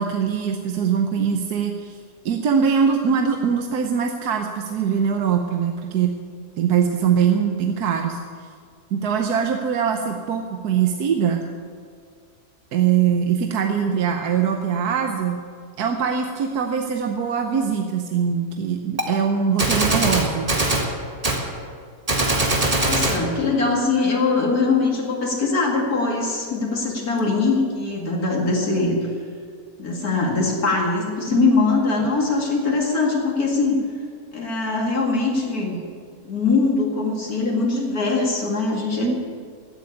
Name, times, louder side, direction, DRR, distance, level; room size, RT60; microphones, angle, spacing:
voice 1, 0.0-2.0 2.2-6.2 6.6-8.2 8.9-11.5 12.7-15.4 15.8-20.5 31.4-31.5 39.0-39.1, right 7 dB, 70° right, 4 dB, 1.4 m, -22 dB
Gunshot gunfire, 19.0-19.1 19.6-20.9 21.2-21.4 22.1-23.2, right 2 dB, 25° right, 1.7 m, -21 dB
voice 2, 22.8-29.0 29.8-33.8 34.3-35.8 36.2-39.2, left 3 dB, 65° left, -1 dB, 2.6 m, -22 dB
16.0 x 7.9 x 9.8 m, 2.1 s
omnidirectional pair, 1.7 m